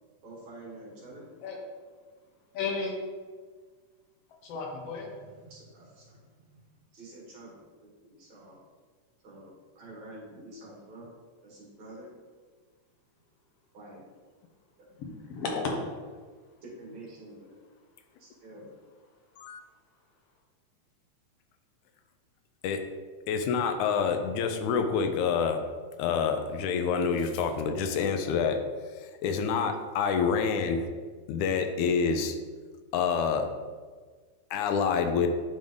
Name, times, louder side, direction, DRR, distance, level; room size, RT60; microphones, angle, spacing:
voice 1, 0.2-1.3 4.8-6.6 6.9-8.6 9.2-11.1 11.4-12.1 13.7-14.0 16.6-17.6 18.2-18.7, right 1 dB, 65° right, -6 dB, 3.1 m, -48 dB
voice 2, 2.5-2.9 4.4-5.1 15.0-15.9, left 4 dB, 60° left, 0 dB, 1.9 m, -33 dB
voice 3, 23.3-25.6 26.0-28.6 29.2-30.9 31.3-32.4 32.9-33.5 34.5-35.3, left 6 dB, 80° left, 6 dB, 2.0 m, -27 dB
10.5 x 3.5 x 3.8 m, 1.5 s
omnidirectional pair, 3.6 m